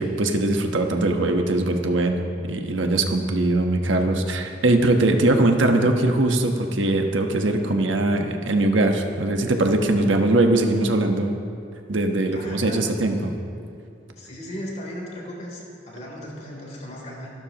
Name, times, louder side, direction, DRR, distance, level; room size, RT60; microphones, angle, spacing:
voice 1, 0.0-11.4 11.9-13.3, right 2 dB, 90° right, 4 dB, 1.2 m, -21 dB
voice 2, 12.3-12.9 14.1-17.3, equal, 35° left, -3 dB, 3.4 m, -36 dB
27.5 x 12.5 x 3.0 m, 2.4 s
head